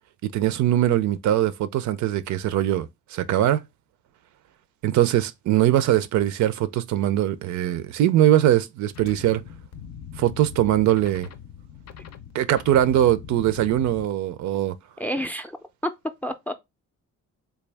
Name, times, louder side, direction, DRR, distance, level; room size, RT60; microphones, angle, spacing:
voice 1, 0.2-3.6 4.8-9.4 10.2-11.3 12.3-14.7, right 12 dB, 75° right, 0.5 m, -21 dB
sound 1, 8.9-14.1, left 8 dB, 60° left, 0.5 m, -41 dB
voice 2, 15.0-15.6 15.8-15.9 16.2-16.5, equal, 5° left, 0.4 m, -28 dB
3.4 x 2.3 x 3.3 m
cardioid pair, 90°, 30 cm